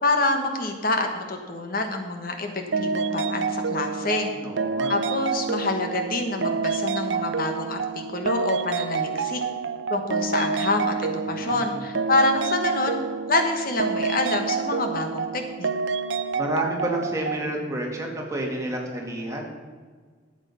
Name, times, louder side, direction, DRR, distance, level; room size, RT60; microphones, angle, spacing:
voice 1, 0.0-2.5 2.8-4.3 4.9-9.4 9.9-13.0 13.3-15.7, left 2 dB, 50° left, 5 dB, 1.3 m, -26 dB
sound 1, 2.7-17.5, right 5 dB, 80° right, 0.6 m, -28 dB
voice 2, 4.3-4.9 11.3-11.8 16.3-19.5, right 1 dB, 15° right, -1 dB, 2.2 m, -30 dB
12.0 x 8.1 x 5.6 m, 1.5 s
head